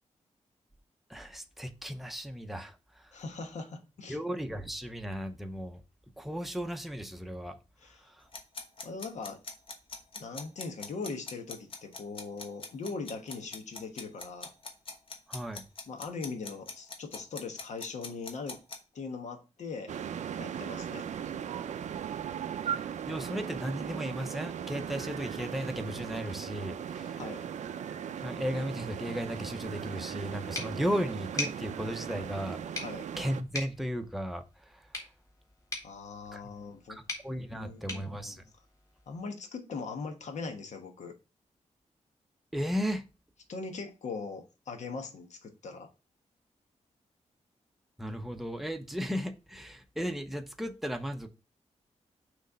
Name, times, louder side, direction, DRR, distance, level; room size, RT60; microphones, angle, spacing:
voice 1, 1.1-3.1 4.1-5.8 6.2-7.6 8.1-8.2 15.3-15.6 22.6-27.3 28.2-32.6 33.2-34.8 36.3-36.5 36.9-38.4 42.5-43.0 48.0-51.3, equal, ahead, 0.6 m, -35 dB
voice 2, 3.1-4.2 7.8-8.0 8.8-9.4 10.2-14.5 15.9-18.6 18.9-19.9 20.2-21.1 27.2-27.5 32.8-33.1 35.8-37.0 37.4-38.4 39.1-41.1 43.5-45.9, left 4 dB, 75° left, 1.2 m, -40 dB
sound 1, 8.3-18.8, left 3 dB, 50° left, 1.2 m, -42 dB
sound 2, 19.9-33.4, right 8 dB, 80° right, 0.5 m, -38 dB
sound 3, 30.5-39.2, left 1 dB, 25° left, 1.8 m, -43 dB
6.2 x 3.2 x 5.2 m
wide cardioid pair, 175°, 12 cm